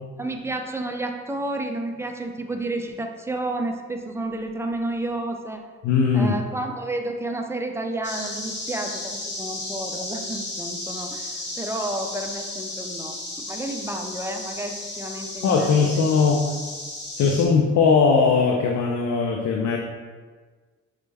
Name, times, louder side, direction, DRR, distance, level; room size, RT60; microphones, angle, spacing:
voice 1, 0.2-5.6 6.1-13.2 13.5-16.0, right 2 dB, 10° right, 4 dB, 0.4 m, -31 dB
voice 2, 5.8-6.3 15.4-16.5 17.2-19.8, left 5 dB, 65° left, 0 dB, 0.5 m, -19 dB
sound 1, 8.0-17.5, left 2 dB, 35° left, 0.9 m, -34 dB
6.1 x 2.2 x 3.3 m, 1.4 s
cardioid pair, 90°, 30 cm